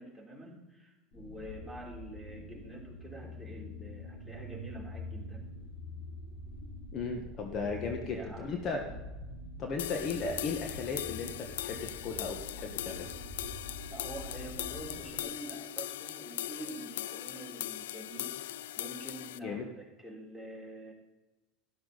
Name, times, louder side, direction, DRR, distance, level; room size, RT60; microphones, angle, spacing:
voice 1, 0.0-5.5 8.1-8.4 8.9-9.0 13.9-20.9, right 1 dB, ahead, 0 dB, 3.4 m, -46 dB
sound 1, 1.1-15.2, left 1 dB, 60° left, 5.2 m, -45 dB
voice 2, 6.9-8.8 9.6-13.1 19.4-19.7, left 4 dB, 45° left, 3 dB, 1.5 m, -36 dB
sound 2, 9.8-19.4, left 13 dB, 80° left, 0.3 m, -40 dB
12.5 x 11.5 x 4.1 m, 1.1 s
hypercardioid pair, 90°, 0 cm